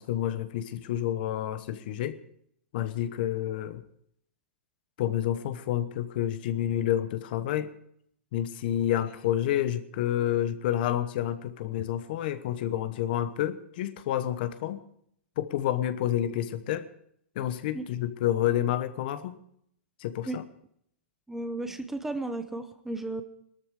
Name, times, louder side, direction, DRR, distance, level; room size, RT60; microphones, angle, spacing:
voice 1, 0.0-2.2 2.7-3.8 5.0-7.7 8.3-14.8 15.4-16.9 17.3-19.4 20.0-20.4, left 12 dB, 50° left, 13 dB, 1.1 m, -29 dB
voice 2, 21.3-23.2, right 2 dB, 5° right, 9 dB, 0.8 m, -34 dB
18.0 x 13.0 x 4.9 m, 0.68 s
hypercardioid pair, 150°, 6 cm